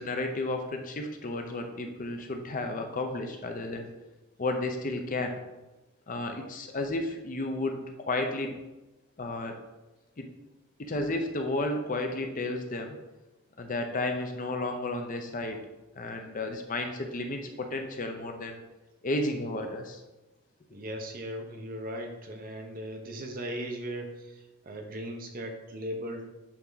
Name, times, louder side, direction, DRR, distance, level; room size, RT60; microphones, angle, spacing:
voice 1, 0.0-3.9 4.4-5.4 6.1-8.6 9.2-9.6 10.2-10.3 10.8-13.0 13.6-15.6 16.0-18.6 19.0-20.0, left 2 dB, 35° left, 4 dB, 0.6 m, -32 dB
voice 2, 20.7-26.3, equal, 40° right, 3 dB, 0.9 m, -38 dB
8.5 x 3.5 x 4.0 m, 1.1 s
head